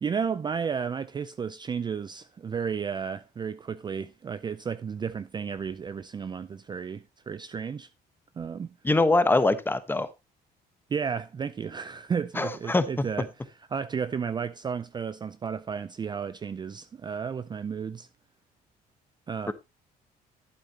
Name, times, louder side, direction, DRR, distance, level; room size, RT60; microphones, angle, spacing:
voice 1, 0.0-7.9 8.4-8.7 10.9-13.3 13.7-18.1 19.3-19.5, right 6 dB, 25° right, 0.4 m, -33 dB
voice 2, 8.8-10.1 12.3-12.8 19.5-19.6, left 2 dB, 10° left, 1.0 m, -23 dB
11.5 x 8.6 x 2.8 m
cardioid pair, 110°, 17 cm